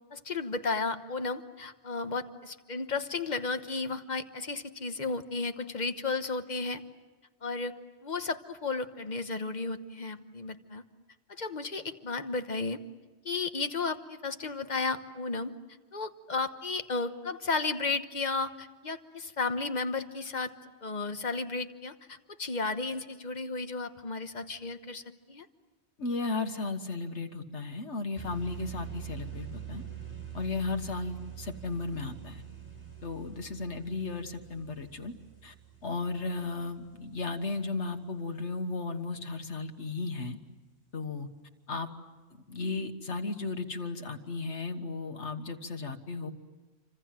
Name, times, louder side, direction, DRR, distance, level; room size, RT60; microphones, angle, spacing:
voice 1, 0.1-6.8 7.4-7.7 8.0-10.8 11.3-12.8 13.2-15.5 15.9-20.5 20.8-25.5, left 3 dB, 40° left, 9 dB, 1.3 m, -33 dB
voice 2, 26.0-29.9 30.3-32.4 33.0-35.1 35.4-35.5 35.8-40.4 40.9-41.3 41.7-41.9 42.5-46.3, left 3 dB, 85° left, 6 dB, 1.8 m, -35 dB
sound 1, 28.1-37.6, right 9 dB, 10° right, 5.6 m, -45 dB
28.5 x 26.0 x 7.6 m, 1.3 s
omnidirectional pair, 1.1 m